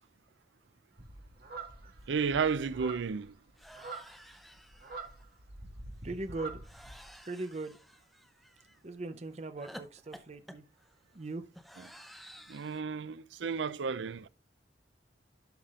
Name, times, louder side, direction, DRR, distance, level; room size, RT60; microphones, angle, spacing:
sound 1, 1.0-7.1, right 3 dB, 55° right, 1.9 m, -46 dB
sound 2, 2.1-2.2 2.5-2.7 3.6-5.2 6.6-8.8 9.6-12.8, equal, ahead, 0.6 m, -53 dB
voice 1, 2.1-3.3 12.5-14.3, right 5 dB, 85° right, 0.5 m, -32 dB
voice 2, 6.0-6.6 7.2-7.8 8.8-10.6 11.1-11.4, right 2 dB, 35° right, 0.6 m, -39 dB
11.5 x 5.7 x 2.5 m
head